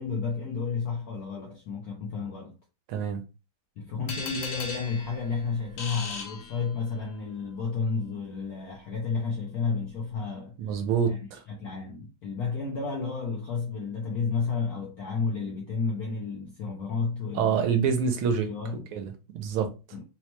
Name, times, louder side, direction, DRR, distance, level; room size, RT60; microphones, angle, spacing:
voice 1, 0.0-2.5 3.8-10.6 11.1-11.2 11.5-17.8 18.4-18.8 19.9-20.0, left 5 dB, 70° left, 0.8 m, -31 dB
voice 2, 2.9-3.2 10.6-11.4 17.3-18.5 18.9-19.7, right 6 dB, 85° right, 1.5 m, -26 dB
sound 1, 4.1-7.1, left 4 dB, 90° left, 1.8 m, -38 dB
4.3 x 2.1 x 3.0 m
omnidirectional pair, 2.4 m